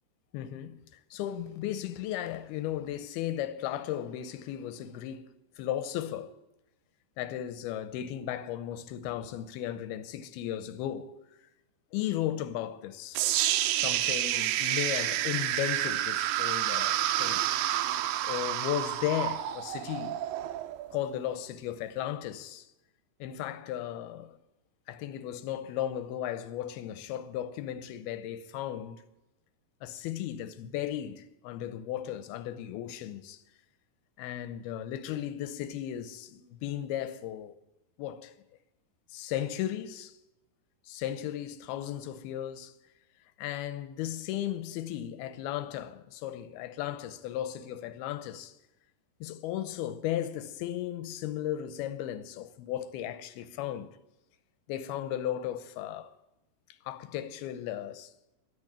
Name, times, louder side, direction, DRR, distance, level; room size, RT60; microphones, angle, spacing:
voice 1, 0.3-0.8 1.1-5.3 5.6-6.3 7.2-11.2 11.9-13.2 13.6-17.4 18.3-20.2 20.9-22.7 23.2-24.4 24.9-29.0 29.8-33.4 34.2-37.5 38.0-38.3 39.1-40.1 40.9-42.8 43.4-48.5 49.2-54.0 54.7-56.1 56.9-58.1, left 11 dB, 80° left, 2.6 m, -35 dB
sound 1, 13.1-21.2, right 13 dB, 85° right, 2.0 m, -29 dB
12.5 x 11.0 x 8.7 m
omnidirectional pair, 4.9 m